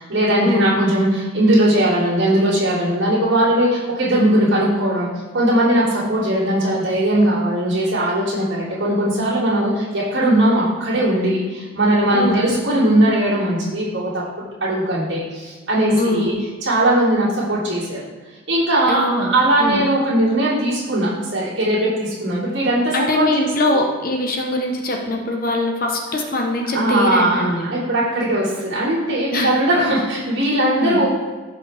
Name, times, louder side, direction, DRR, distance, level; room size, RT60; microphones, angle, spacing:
voice 1, 0.0-5.1 5.3-14.2 14.6-16.3 16.6-18.0 18.5-23.2 26.7-31.1, right 1 dB, 65° right, -10 dB, 3.2 m, -19 dB
voice 2, 16.0-16.3 18.9-19.3 19.6-19.8 22.9-27.7 29.3-29.6 30.8-31.0, left 1 dB, 45° left, 1 dB, 1.1 m, -22 dB
15.5 x 5.2 x 3.5 m, 1.3 s
head